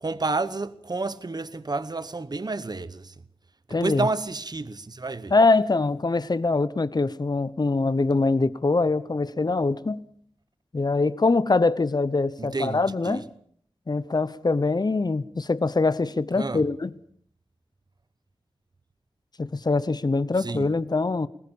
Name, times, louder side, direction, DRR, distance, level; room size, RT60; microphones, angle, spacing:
voice 1, 0.0-3.1 3.8-5.3 12.4-13.2 16.4-16.6 20.4-20.7, right 3 dB, 45° right, 1.0 m, -30 dB
voice 2, 3.7-4.1 5.3-10.0 10.7-13.2 13.9-16.9 19.4-21.3, left 3 dB, 45° left, 0.9 m, -23 dB
21.0 x 19.0 x 7.1 m
wide cardioid pair, 55°, 10 cm